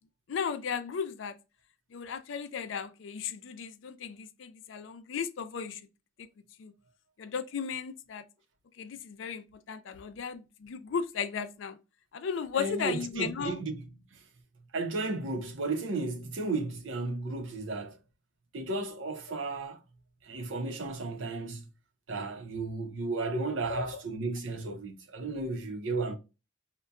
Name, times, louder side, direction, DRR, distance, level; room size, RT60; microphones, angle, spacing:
voice 1, 0.3-1.3 1.9-5.8 6.2-6.3 6.6-6.7 7.2-8.2 8.8-11.8 12.1-13.6 23.7-23.8, left 6 dB, 75° left, 0.4 m, -35 dB
voice 2, 12.5-14.2 14.7-18.0 18.5-19.8 20.2-21.7 22.1-26.2, right 3 dB, 75° right, 0.7 m, -34 dB
5.4 x 2.2 x 2.2 m
head